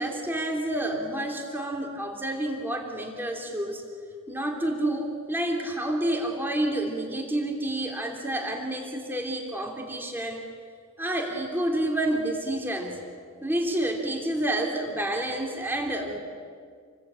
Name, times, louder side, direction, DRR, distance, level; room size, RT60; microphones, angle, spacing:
voice 1, 0.0-3.8 4.3-10.4 11.0-13.0 13.4-16.2, right 1 dB, 10° right, 2 dB, 2.9 m, -29 dB
28.5 x 21.5 x 8.8 m, 2.1 s
head